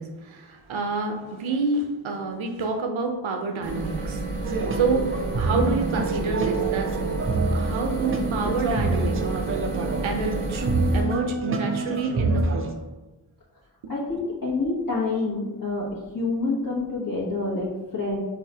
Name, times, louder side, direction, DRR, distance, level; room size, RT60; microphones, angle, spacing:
voice 1, 0.0-7.0 7.5-9.2 10.0-10.7 10.9-12.7 13.8-14.0, right 3 dB, 70° right, 4 dB, 0.7 m, -28 dB
sound 1, 3.6-11.0, right 2 dB, 90° right, 1.0 m, -30 dB
sound 2, 4.4-12.7, right 3 dB, 30° right, 0.4 m, -27 dB
voice 2, 13.9-15.9 16.1-18.2, left 3 dB, 40° left, -6 dB, 1.0 m, -27 dB
4.7 x 2.1 x 2.8 m, 1.1 s
cardioid pair, 40°, 49 cm